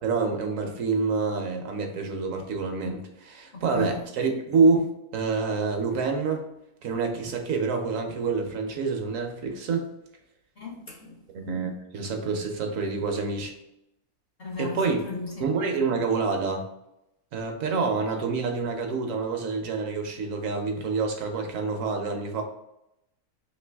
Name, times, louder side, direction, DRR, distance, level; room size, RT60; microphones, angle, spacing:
voice 1, 0.0-6.5 6.8-9.9 11.3-13.5 14.6-15.0 15.4-16.7 17.3-22.4, right 4 dB, 70° right, 4 dB, 0.9 m, -27 dB
voice 2, 3.5-4.0 10.6-11.2 14.4-15.4, left 3 dB, 55° left, -1 dB, 0.7 m, -36 dB
3.1 x 2.6 x 3.3 m, 0.84 s
omnidirectional pair, 1.5 m